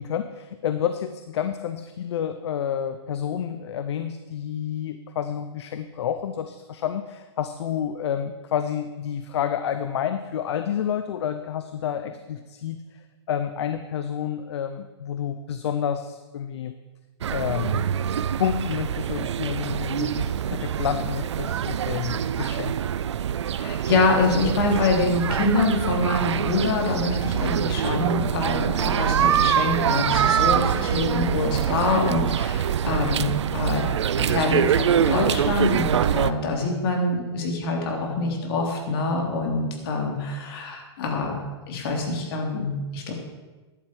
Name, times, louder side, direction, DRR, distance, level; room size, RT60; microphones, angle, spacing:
voice 1, 0.0-12.8 13.3-16.8 17.3-17.9 18.4-22.8, left 9 dB, 70° left, 9 dB, 0.8 m, -29 dB
sound 1, 17.2-36.3, right 9 dB, 90° right, 0.6 m, -24 dB
voice 2, 23.6-41.4 41.7-43.2, left 3 dB, 55° left, 1 dB, 3.6 m, -25 dB
14.5 x 11.0 x 4.7 m, 1.2 s
hypercardioid pair, 140°, 15 cm